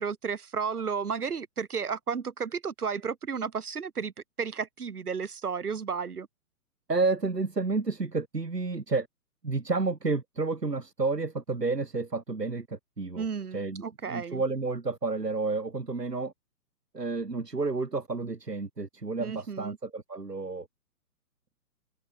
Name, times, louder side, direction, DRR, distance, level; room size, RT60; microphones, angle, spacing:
voice 1, 0.0-4.1 4.4-6.3 13.2-14.4 19.2-19.8, right 6 dB, 70° right, 6.5 m, -33 dB
voice 2, 6.9-9.1 9.4-13.3 13.5-16.3 16.9-20.7, right 3 dB, 90° right, 2.7 m, -30 dB
figure-of-eight pair, 130°, 47 cm